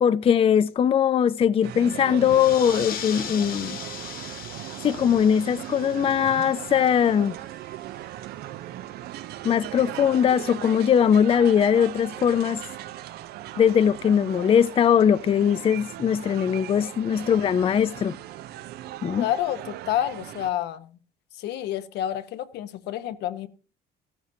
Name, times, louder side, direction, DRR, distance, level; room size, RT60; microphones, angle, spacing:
voice 1, 0.0-3.8 4.8-7.4 9.4-12.6 13.6-18.1 19.0-19.3, left 8 dB, 35° left, 0.4 m, -21 dB
sound 1, 1.6-20.5, right 13 dB, 70° right, 0.6 m, -38 dB
sound 2, 2.2-7.4, left 10 dB, 60° left, 1.0 m, -39 dB
voice 2, 19.2-21.0 21.4-23.5, left 11 dB, 80° left, 1.0 m, -29 dB
14.5 x 13.0 x 2.7 m
cardioid pair, 110°, 17 cm